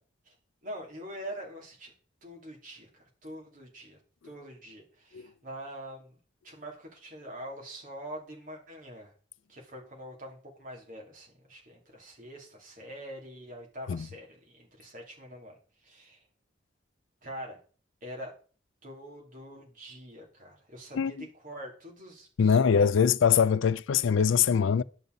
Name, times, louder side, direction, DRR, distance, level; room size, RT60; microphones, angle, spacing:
voice 1, 0.6-1.9 2.2-6.2 6.4-9.1 9.5-16.2 17.2-17.6 18.0-18.3 18.8-21.2 21.4-22.7, equal, 45° right, 2.9 m, -44 dB
voice 2, 21.0-21.3 22.4-24.8, left 7 dB, 90° left, 0.4 m, -23 dB
10.5 x 7.2 x 3.9 m
head